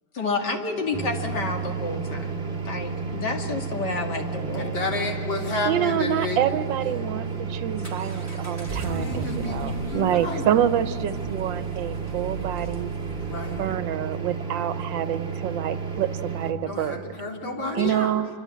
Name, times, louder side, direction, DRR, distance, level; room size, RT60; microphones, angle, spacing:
voice 1, 0.1-2.4 2.7-4.8, left 3 dB, 65° left, 3 dB, 2.8 m, -29 dB
sound 1, 0.9-16.5, right 5 dB, 30° right, 2.6 m, -32 dB
voice 2, 4.5-6.4 6.9-7.1 8.8-10.5 13.3-13.6 16.7-18.1, left 2 dB, 85° left, 0 dB, 4.2 m, -31 dB
voice 3, 5.6-12.9 13.5-17.2 17.8-18.3, right 10 dB, 80° right, 13 dB, 1.5 m, -27 dB
Accelerating revving vroom, 7.2-13.8, right 2 dB, 10° right, 3.3 m, -38 dB
26.5 x 24.0 x 8.4 m, 2.6 s
omnidirectional pair, 2.0 m